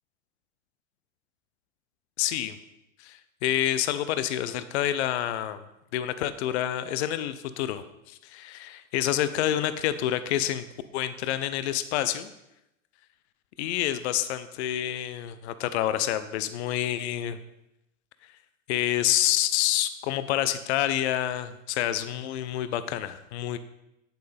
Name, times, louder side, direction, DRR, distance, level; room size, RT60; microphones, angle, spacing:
voice 1, 2.2-2.6 3.0-5.6 5.9-10.6 10.9-12.3 13.6-17.4 18.7-23.6, left 12 dB, 50° left, 12 dB, 0.7 m, -28 dB
8.5 x 7.9 x 3.5 m, 0.87 s
hypercardioid pair, 105°, 41 cm